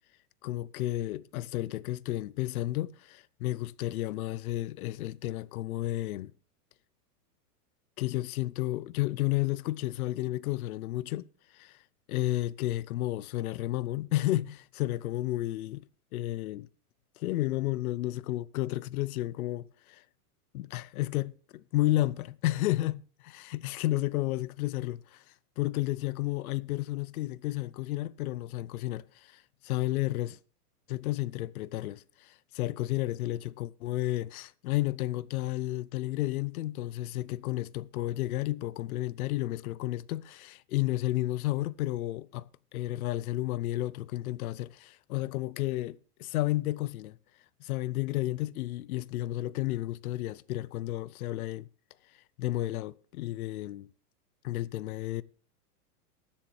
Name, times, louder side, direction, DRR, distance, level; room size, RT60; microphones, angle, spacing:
voice 1, 0.4-6.3 8.0-11.3 11.5-11.8 12.1-16.7 17.2-20.0 20.5-25.2 25.6-30.4 30.9-47.2 47.6-51.7 52.4-53.9 54.4-55.2, left 16 dB, 65° left, 0.6 m, -32 dB
22.0 x 7.3 x 3.1 m
supercardioid pair, 150°, 47 cm